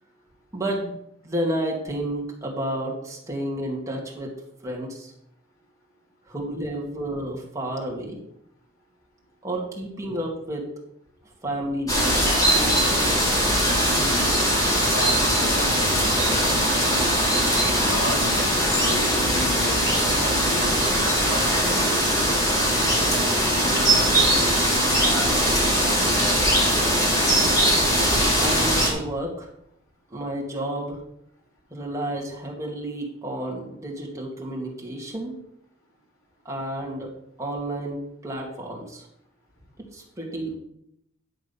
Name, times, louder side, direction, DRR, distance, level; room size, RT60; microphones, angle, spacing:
voice 1, 0.5-1.0 1.2-4.3 4.6-5.1 6.3-8.2 9.4-10.7 11.4-12.7 28.4-29.5 30.1-31.0 31.7-35.4 36.4-37.1 37.4-39.1 39.9-40.5, right 1 dB, 15° right, -2 dB, 2.1 m, -31 dB
sound 1, 11.9-28.9, equal, 15° left, 2.6 m, -21 dB
voice 2, 13.9-14.5 14.8-17.1 17.6-22.2 28.1-28.5, left 1 dB, 85° left, -2 dB, 3.5 m, -35 dB
11.0 x 6.4 x 5.5 m, 0.77 s
head